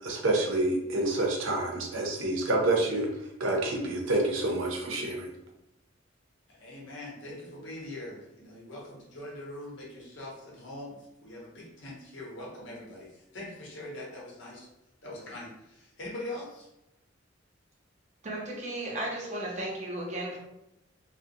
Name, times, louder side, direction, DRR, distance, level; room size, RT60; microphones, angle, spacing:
voice 1, 0.0-3.1 3.4-5.3, right 2 dB, 90° right, 1 dB, 0.6 m, -28 dB
voice 2, 6.5-14.7 15.0-16.7, left 1 dB, 70° left, -4 dB, 0.8 m, -42 dB
voice 3, 18.2-20.4, right 1 dB, 40° right, -1 dB, 0.6 m, -35 dB
2.3 x 2.1 x 2.6 m, 0.88 s
head